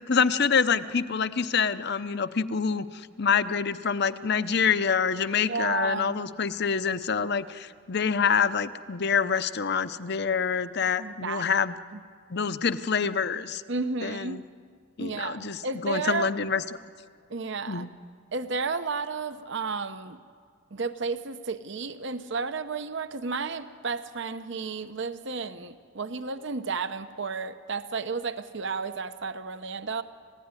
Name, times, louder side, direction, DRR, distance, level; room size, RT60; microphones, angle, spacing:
voice 1, 0.1-11.8 12.3-13.6 14.0-14.4 15.0-16.8 17.7-17.9, left 6 dB, 55° left, 12 dB, 0.8 m, -26 dB
voice 2, 5.5-6.2 11.0-11.4 13.7-14.4 15.0-16.3 17.3-17.9 18.3-20.2 20.7-30.0, right 4 dB, 60° right, 10 dB, 0.8 m, -32 dB
28.5 x 16.0 x 9.8 m, 2.1 s
head